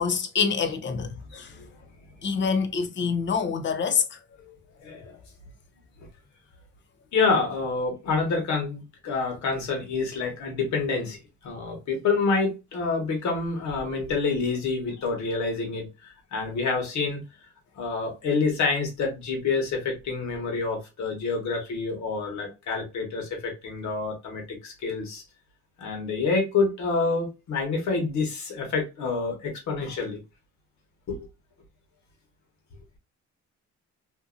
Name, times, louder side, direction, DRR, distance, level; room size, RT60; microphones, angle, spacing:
voice 1, 0.0-1.5 2.2-4.2, left 6 dB, 40° left, 0.6 m, -26 dB
voice 2, 1.3-1.7 2.8-2.9 4.8-5.2 7.1-17.2 17.8-25.2 25.8-30.2 31.1-31.2, left 4 dB, 70° left, 1.3 m, -27 dB
2.7 x 2.5 x 2.4 m
cardioid pair, 90°, 30 cm